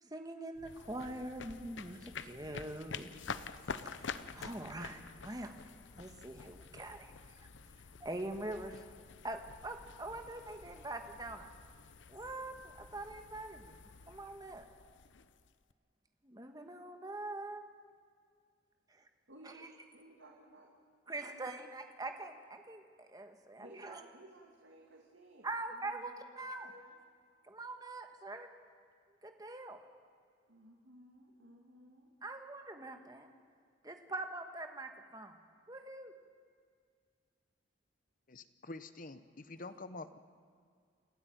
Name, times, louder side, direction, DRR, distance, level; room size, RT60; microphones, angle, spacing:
voice 1, 0.0-3.1 3.4-3.6 3.8-5.5 6.0-7.1 7.4-7.5 8.0-8.8 9.2-11.5 12.1-13.7 14.1-14.6 16.2-17.6 18.9-19.1 21.1-24.0 25.4-26.7 27.5-28.5 29.2-29.8 32.2-33.3 33.8-35.4 35.7-36.1, right 2 dB, 20° right, 6 dB, 1.5 m, -43 dB
sound 1, 0.6-15.7, left 5 dB, 75° left, 0.8 m, -48 dB
voice 2, 19.3-20.7 21.1-21.3 23.6-27.0 30.5-32.1, right 1 dB, 75° right, 0 dB, 2.3 m, -57 dB
voice 3, 38.3-40.2, left 2 dB, 45° left, 12 dB, 1.0 m, -47 dB
29.0 x 12.5 x 9.1 m, 2.1 s
head